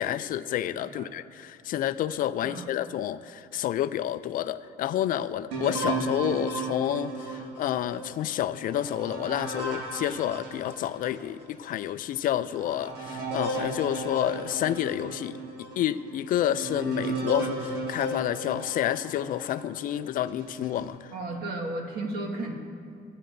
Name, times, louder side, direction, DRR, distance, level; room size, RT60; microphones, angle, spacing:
voice 1, 0.0-15.4 15.8-21.1, left 11 dB, 55° left, 14 dB, 0.4 m, -29 dB
voice 2, 0.8-1.1 2.4-2.7 21.1-22.5, right 2 dB, 65° right, -1 dB, 1.7 m, -34 dB
sound 1, 5.5-11.3 11.8-11.9 12.5-19.7 20.3-20.9, right 2 dB, 85° right, 1.8 m, -35 dB
17.0 x 9.7 x 2.6 m, 2.3 s
cardioid pair, 110°, 17 cm